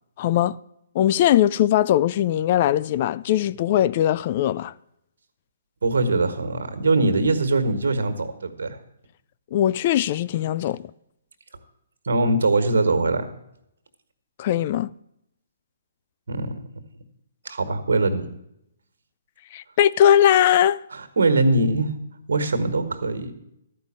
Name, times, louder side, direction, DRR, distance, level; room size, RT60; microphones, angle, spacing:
voice 1, 0.2-0.6 0.9-4.7 9.5-10.8 14.4-14.9 19.5-20.8, left 11 dB, 45° left, 0.3 m, -20 dB
voice 2, 5.8-8.8 12.0-13.3 16.3-16.6 17.4-18.3 20.9-21.9 22.3-23.3, right 2 dB, 75° right, 1.4 m, -22 dB
13.0 x 5.3 x 7.3 m
hypercardioid pair, 140°, 0 cm